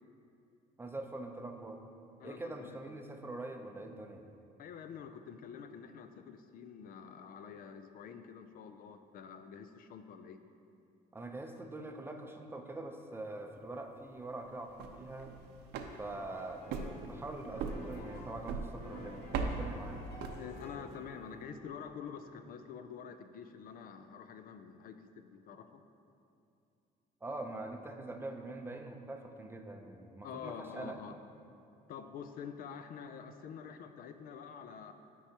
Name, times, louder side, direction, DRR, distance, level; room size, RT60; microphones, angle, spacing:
voice 1, 0.8-1.8 2.2-4.3 11.1-15.3 16.0-20.0 27.2-31.0, right 2 dB, 15° right, 3 dB, 0.6 m, -44 dB
voice 2, 2.2-2.8 4.6-10.4 20.4-25.8 30.2-31.1 31.9-34.9, left 7 dB, 60° left, 8 dB, 0.4 m, -47 dB
sound 1, 14.6-20.9, right 4 dB, 85° right, 0.7 m, -41 dB
sound 2, 16.3-17.0 17.4-21.5, left 2 dB, 80° left, 1.2 m, -50 dB
12.0 x 4.7 x 2.8 m, 2.6 s
cardioid pair, 110°, 17 cm